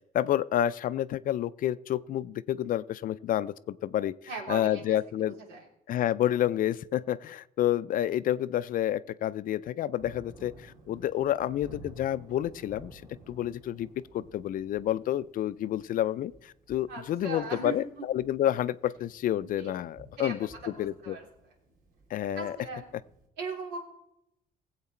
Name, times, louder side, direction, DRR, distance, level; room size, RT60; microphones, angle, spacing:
voice 1, 0.1-4.2 4.5-5.3 5.9-13.0 13.3-20.4 20.8-21.2 22.1-22.5, left 12 dB, 55° left, 16 dB, 0.4 m, -29 dB
voice 2, 4.3-5.0 5.3-5.6 16.9-17.8 19.6-19.7 20.2-21.3 22.3-22.8 23.4-23.8, right 3 dB, 90° right, 1 dB, 3.2 m, -38 dB
Thunder, 10.0-23.3, right 1 dB, 55° right, 3.0 m, -54 dB
17.5 x 8.1 x 4.3 m, 0.81 s
cardioid pair, 110°, 17 cm